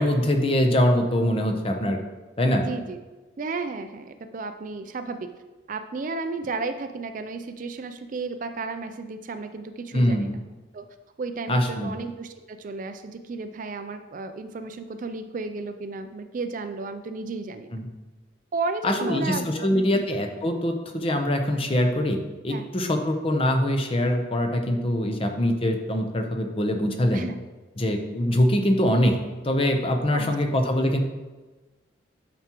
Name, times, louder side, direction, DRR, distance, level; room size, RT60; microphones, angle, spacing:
voice 1, 0.0-2.0 2.4-2.7 9.9-10.4 11.5-12.0 17.7-17.8 18.8-22.2 22.4-27.2 27.8-29.2 29.4-31.0, left 1 dB, 30° left, 4 dB, 0.7 m, -23 dB
voice 2, 2.6-3.0 3.4-5.3 5.7-10.3 10.7-10.9 11.2-17.7 18.5-20.0 22.5-22.7 27.1-27.3 28.3-28.4 30.1-30.3, right 3 dB, 40° right, 9 dB, 0.4 m, -33 dB
9.1 x 6.0 x 3.0 m, 1.2 s
head